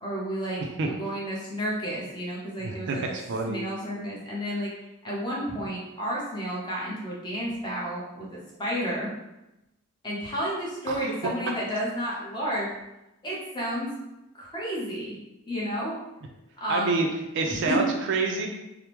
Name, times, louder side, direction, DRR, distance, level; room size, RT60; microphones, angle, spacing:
voice 1, 0.0-3.1 3.5-4.7 5.0-9.1 10.0-12.7 13.2-13.9 14.3-15.1 15.5-16.0 16.6-17.0 17.4-17.8, equal, 20° left, -5 dB, 0.7 m, -31 dB
voice 2, 2.6-3.6 10.9-11.0 16.7-17.1 17.3-18.5, right 3 dB, 55° right, 1 dB, 0.4 m, -27 dB
3.4 x 2.0 x 2.9 m, 0.94 s
head